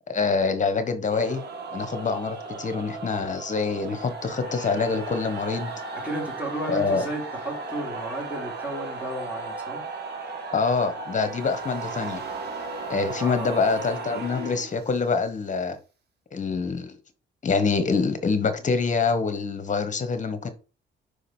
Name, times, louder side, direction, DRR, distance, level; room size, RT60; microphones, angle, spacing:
voice 1, 0.1-1.4 1.7-5.7 6.7-7.0 10.5-12.2 12.9-15.8 16.3-16.9 17.4-20.5, left 4 dB, 40° left, 1.2 m, -25 dB
sound 1, 1.1-15.3, right 3 dB, 55° right, 2.2 m, -36 dB
voice 2, 5.9-9.8 13.1-13.6, right 1 dB, 5° right, 2.7 m, -33 dB
5.1 x 4.9 x 4.4 m
cardioid pair, 90°, 20 cm